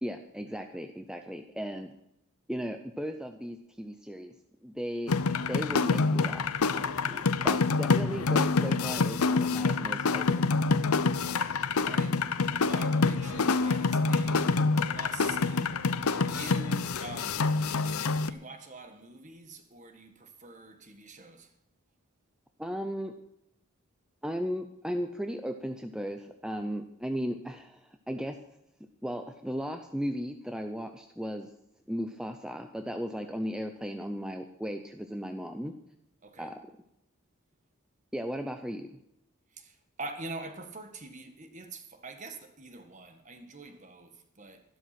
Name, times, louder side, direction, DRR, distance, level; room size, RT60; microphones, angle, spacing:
voice 1, 0.0-1.9 2.5-4.3 4.6-5.2 5.5-6.5 6.7-10.4 22.6-23.1 24.2-28.4 29.0-31.5 31.9-35.7 36.4-36.6 38.1-39.0, equal, 5° right, 0.6 m, -36 dB
sound 1, 5.1-18.3, left 4 dB, 85° left, 0.7 m, -27 dB
voice 2, 11.2-15.7 16.1-17.5 18.3-21.5 36.2-36.5 39.5-44.6, right 3 dB, 35° right, 1.5 m, -45 dB
13.0 x 12.5 x 5.9 m
head